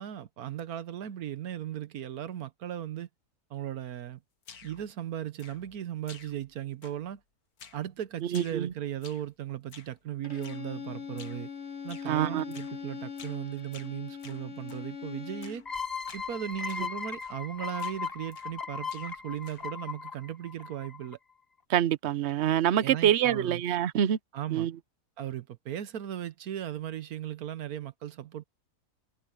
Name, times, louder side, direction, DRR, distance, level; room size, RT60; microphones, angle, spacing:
voice 1, 0.0-3.1 3.5-4.2 4.6-7.2 7.7-11.5 11.8-15.6 16.1-21.2 22.8-23.6 24.3-24.7 25.2-28.4, right 11 dB, 80° right, 1.4 m, -37 dB
sound 1, 4.4-4.9 5.4-5.8 6.1-6.5 6.8-7.2 7.6-7.9 8.3-9.3 9.7-10.0 10.4-10.7 11.2-11.5 11.9-12.1 12.5-12.8 13.2-13.4 13.7-14.9 15.4-15.7 16.0-16.3 16.7-16.9 17.2-17.5 17.8-18.6 18.9-19.8, left 6 dB, 85° left, 2.0 m, -52 dB
voice 2, 8.3-8.7 12.1-12.4 21.7-24.2 24.5-24.7, right 10 dB, 55° right, 0.9 m, -26 dB
Bowed string instrument, 10.2-15.7, left 6 dB, 50° left, 1.9 m, -41 dB
sound 2, 15.7-21.1, left 5 dB, 30° left, 0.4 m, -37 dB
omnidirectional pair, 1.5 m